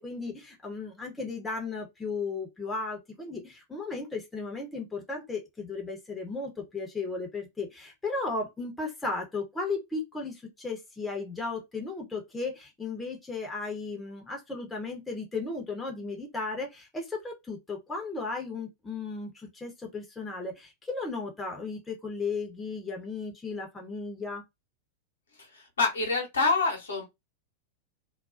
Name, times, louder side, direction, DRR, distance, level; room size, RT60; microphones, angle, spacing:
voice 1, 0.0-24.4, left 3 dB, 10° left, 0.8 m, -35 dB
voice 2, 25.5-27.0, left 3 dB, 70° left, 0.9 m, -26 dB
2.4 x 2.2 x 2.3 m
figure-of-eight pair, 90°, 0 cm